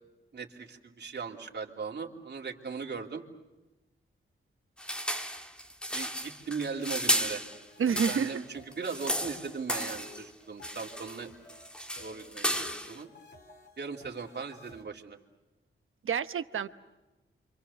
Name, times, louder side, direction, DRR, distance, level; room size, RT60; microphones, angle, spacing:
voice 1, 0.3-3.2 5.9-7.4 7.9-11.3 12.0-13.1 13.8-15.2, right 5 dB, 55° right, 1 dB, 2.9 m, -38 dB
sound 1, 4.8-8.4 8.7-10.3 10.6-11.2 11.5-13.0, equal, 5° left, 1.6 m, -33 dB
sound 2, 7.2-14.8, left 4 dB, 55° left, 3.5 m, -54 dB
voice 2, 7.8-8.3 16.0-16.7, right 7 dB, 75° right, 12 dB, 1.0 m, -28 dB
28.5 x 25.5 x 7.1 m, 1.1 s
wide cardioid pair, 95°, 21 cm